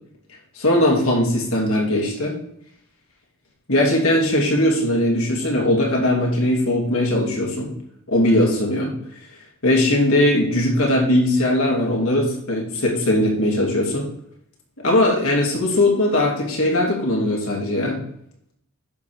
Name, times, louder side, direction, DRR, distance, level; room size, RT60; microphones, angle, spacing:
voice 1, 0.6-2.3 3.7-7.7 8.1-8.9 9.6-14.1 14.8-18.0, left 1 dB, 70° left, -1 dB, 2.7 m, -19 dB
10.5 x 3.8 x 6.5 m, 0.71 s
head